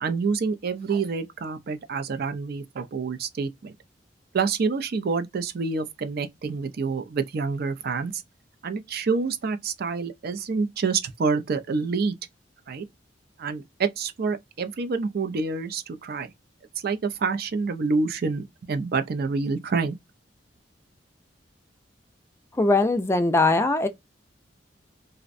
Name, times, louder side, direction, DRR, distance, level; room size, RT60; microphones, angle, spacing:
voice 1, 0.0-3.8 4.3-8.2 8.6-12.1 12.7-12.8 13.4-16.3 16.8-20.0, right 4 dB, 55° right, 0.4 m, -27 dB
voice 2, 22.6-23.9, left 2 dB, 15° left, 0.3 m, -21 dB
2.5 x 2.1 x 2.4 m
head